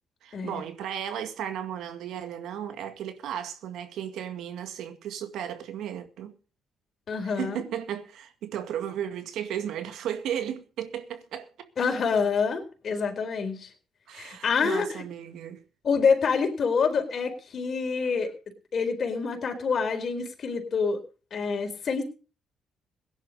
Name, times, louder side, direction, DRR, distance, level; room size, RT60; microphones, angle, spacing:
voice 1, 0.2-6.3 7.2-11.5 14.1-15.6, right 9 dB, 75° right, 2.0 m, -35 dB
voice 2, 7.1-7.6 11.8-13.7 14.1-15.0 15.8-18.3 18.7-21.0 21.3-22.0, left 5 dB, 50° left, 4.2 m, -27 dB
17.0 x 10.5 x 5.3 m
supercardioid pair, 75°, 0 cm